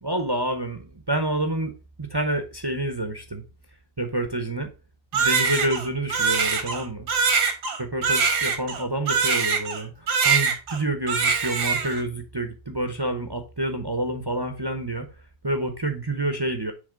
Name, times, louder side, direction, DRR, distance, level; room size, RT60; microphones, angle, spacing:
voice 1, 0.0-1.7 2.0-3.4 4.0-4.7 5.1-7.1 7.8-15.1 15.4-16.7, right 1 dB, 30° right, 0.4 m, -28 dB
Crying sobbing, 5.1-9.8 10.1-10.8 11.1-12.0, right 5 dB, 85° right, 1.8 m, -23 dB
7.1 x 3.4 x 5.0 m
omnidirectional pair, 1.7 m